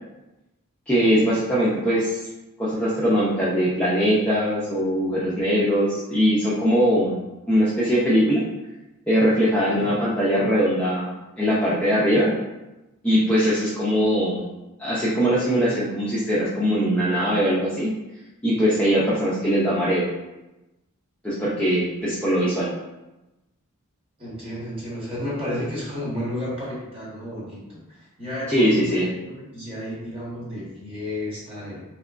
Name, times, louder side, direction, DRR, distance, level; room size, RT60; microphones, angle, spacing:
voice 1, 0.9-2.2 2.6-7.1 7.5-8.4 9.1-11.1 11.4-12.4 13.0-14.4 14.8-17.9 18.4-20.1 21.2-22.7 28.5-29.1, equal, 5° left, -9 dB, 0.5 m, -21 dB
voice 2, 24.2-27.8 28.2-29.1 29.3-31.8, left 1 dB, 25° right, -7 dB, 1.2 m, -32 dB
3.3 x 2.9 x 2.5 m, 1.0 s
head